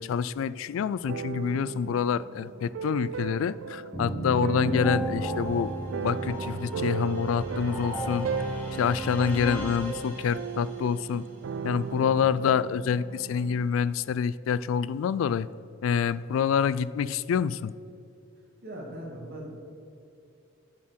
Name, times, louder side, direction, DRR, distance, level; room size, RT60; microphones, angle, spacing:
voice 1, 0.0-5.7 6.0-8.3 8.8-11.2 11.6-15.5 15.8-17.7, left 7 dB, 80° left, 19 dB, 0.3 m, -27 dB
sound 1, 1.0-13.7, right 6 dB, 70° right, 0.3 m, -37 dB
sound 2, 3.9-10.7, right 1 dB, 10° left, 2.4 m, -33 dB
voice 2, 11.9-12.2 18.6-19.6, right 1 dB, 50° right, -2 dB, 2.2 m, -40 dB
7.4 x 6.5 x 7.7 m, 2.6 s
head